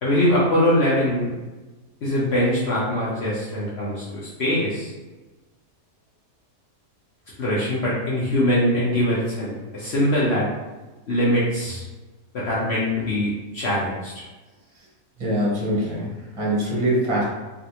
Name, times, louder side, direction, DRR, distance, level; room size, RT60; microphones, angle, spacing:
voice 1, 0.0-1.3 2.0-4.9 7.4-10.5 11.1-11.8 12.3-14.1, left 1 dB, 55° left, -7 dB, 0.9 m, -22 dB
voice 2, 15.2-17.2, equal, 25° right, -5 dB, 0.8 m, -23 dB
3.4 x 2.5 x 2.8 m, 1.2 s
omnidirectional pair, 1.5 m